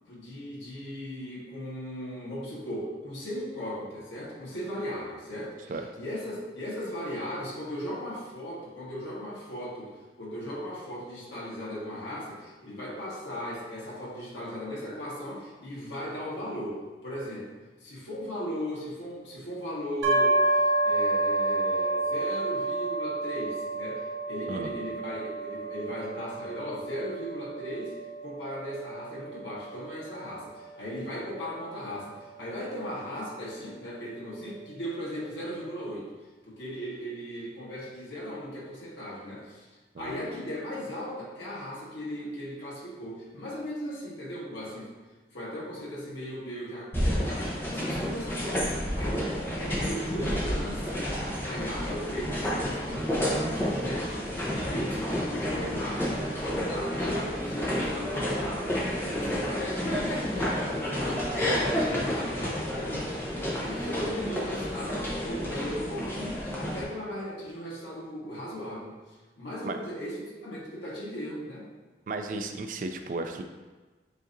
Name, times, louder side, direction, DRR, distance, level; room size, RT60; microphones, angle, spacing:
voice 1, 0.1-9.9 10.2-17.5 17.8-27.9 28.2-36.1 36.4-39.7 40.0-44.9 45.3-51.0 51.4-63.2 63.5-71.6, equal, 90° left, -6 dB, 1.5 m, -37 dB
sound 1, 20.0-33.7, right 2 dB, 85° right, 0.8 m, -30 dB
sound 2, 46.9-66.8, equal, 10° left, 0.8 m, -30 dB
voice 2, 72.1-73.4, right 3 dB, 45° right, 6 dB, 0.3 m, -34 dB
7.2 x 2.7 x 2.6 m, 1.3 s
head